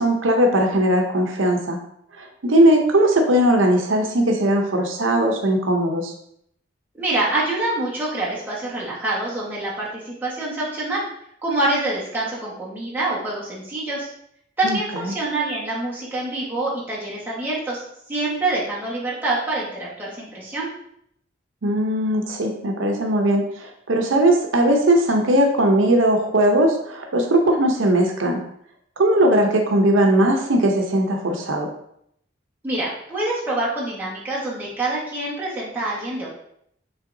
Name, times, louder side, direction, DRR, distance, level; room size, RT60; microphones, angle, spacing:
voice 1, 0.0-1.8 2.2-6.1 14.6-14.8 15.0-15.1 21.6-28.4 29.0-31.7, right 1 dB, 85° right, 2 dB, 0.7 m, -19 dB
voice 2, 7.0-11.0 11.4-14.1 14.6-17.8 18.1-20.7 32.6-36.3, right 2 dB, 10° right, -7 dB, 1.3 m, -26 dB
5.5 x 3.4 x 2.6 m, 0.72 s
head